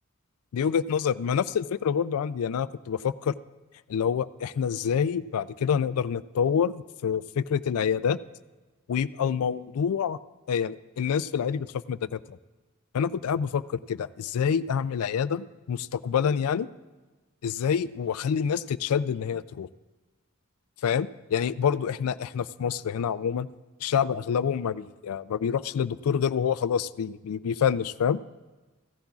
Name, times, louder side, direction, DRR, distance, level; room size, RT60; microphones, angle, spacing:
voice 1, 0.5-3.3 3.9-8.2 8.9-10.2 10.5-12.4 12.9-16.7 17.4-19.7 20.8-23.5 23.8-28.2, left 7 dB, 80° left, 17 dB, 0.4 m, -27 dB
15.5 x 14.0 x 2.4 m, 1.2 s
head